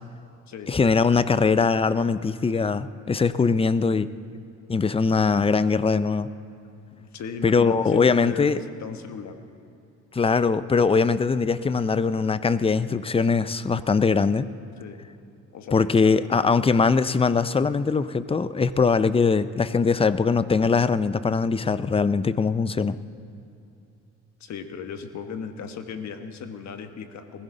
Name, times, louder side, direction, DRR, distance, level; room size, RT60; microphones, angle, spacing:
voice 1, 0.7-4.1 4.7-6.3 7.4-8.6 10.1-14.5 15.7-23.0, left 5 dB, 20° left, 14 dB, 0.5 m, -21 dB
voice 2, 7.0-9.4 14.8-15.0 15.5-16.7 24.4-27.4, left 6 dB, 65° left, 7 dB, 1.4 m, -37 dB
20.5 x 15.5 x 3.9 m, 2.7 s
cardioid pair, 90°, 30 cm